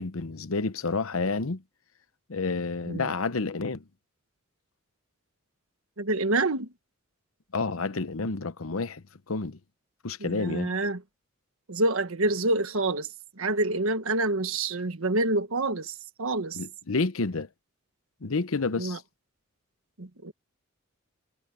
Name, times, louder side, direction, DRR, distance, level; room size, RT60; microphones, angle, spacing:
voice 1, 0.0-1.6 2.3-3.8 7.5-9.6 10.0-10.7 16.5-17.5 18.2-19.0, left 3 dB, 80° left, 0.9 m, -29 dB
voice 2, 6.0-6.7 10.2-11.0 11.7-13.1 13.4-16.6 18.7-19.0 20.0-20.3, right 2 dB, 75° right, 1.5 m, -27 dB
head